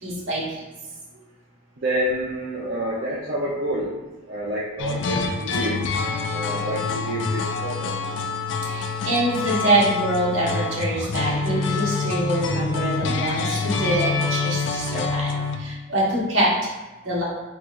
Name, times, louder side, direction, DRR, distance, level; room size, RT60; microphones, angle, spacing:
voice 1, 0.0-0.5 8.6-15.3 15.6-16.7 17.0-17.2, right 1 dB, 65° right, -6 dB, 1.3 m, -24 dB
voice 2, 1.8-3.9 4.3-5.8 6.3-8.1 16.0-16.1, right 1 dB, 50° right, -8 dB, 0.7 m, -28 dB
sound 1, 4.8-15.6, left 4 dB, 60° left, 0.4 m, -26 dB
4.5 x 4.0 x 2.5 m, 1.2 s
head